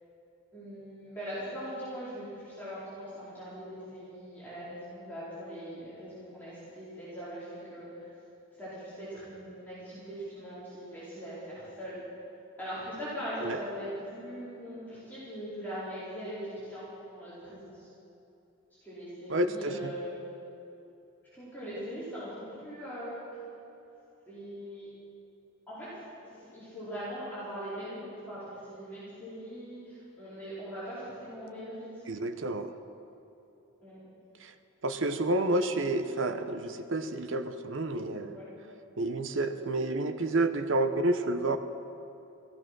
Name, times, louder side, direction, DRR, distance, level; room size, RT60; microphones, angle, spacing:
voice 1, 0.5-8.1 8.6-12.0 12.6-16.8 17.1-17.9 18.8-20.2 21.3-23.3 24.2-24.9 25.7-26.0 26.4-32.2 33.8-34.0 38.3-38.5, equal, 10° left, -12 dB, 4.5 m, -41 dB
voice 2, 19.3-19.8 32.1-32.7 34.4-34.5 34.8-38.4 39.0-41.6, right 2 dB, 60° right, 8 dB, 0.8 m, -29 dB
15.5 x 14.5 x 6.1 m, 2.8 s
head